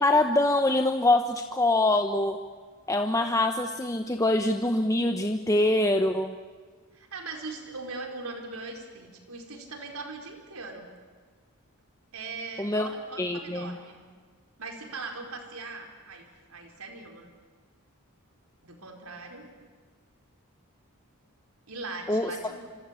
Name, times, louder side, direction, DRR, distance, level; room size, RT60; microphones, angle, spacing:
voice 1, 0.0-2.4 2.9-6.3 12.6-12.9 13.2-13.8 22.1-22.5, left 2 dB, 15° left, 5 dB, 1.0 m, -24 dB
voice 2, 6.9-10.9 12.1-14.0 14.6-17.3 18.6-19.5 21.7-22.7, right 3 dB, 75° right, 3 dB, 4.9 m, -40 dB
26.5 x 26.0 x 8.4 m, 1.5 s
head